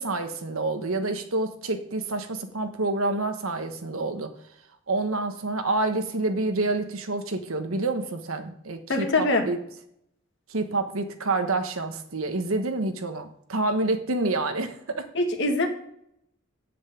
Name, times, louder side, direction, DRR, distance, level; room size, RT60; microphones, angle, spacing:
voice 1, 0.0-4.3 4.9-9.6 10.5-15.0, right 2 dB, 75° right, 7 dB, 1.3 m, -28 dB
voice 2, 8.9-9.5 15.1-15.7, left 2 dB, 55° left, 3 dB, 2.0 m, -23 dB
8.1 x 7.4 x 7.9 m, 0.72 s
head